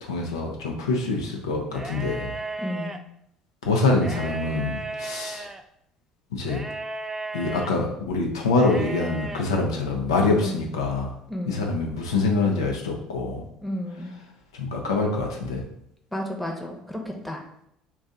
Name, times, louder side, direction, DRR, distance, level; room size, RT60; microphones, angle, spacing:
voice 1, 0.0-2.3 3.6-5.5 6.3-6.6 7.3-11.1 11.5-13.5 14.5-15.6, left 3 dB, 85° left, 0 dB, 0.5 m, -25 dB
sound 1, 1.7-3.0 3.9-5.6 6.5-7.7 8.5-9.4, right 3 dB, 15° right, 0.3 m, -35 dB
voice 2, 2.6-2.9 10.4-10.7 11.3-11.7 13.6-14.2 16.1-17.4, left 1 dB, 5° left, 1 dB, 0.8 m, -32 dB
2.6 x 2.3 x 3.8 m, 0.75 s
hypercardioid pair, 60°, 2 cm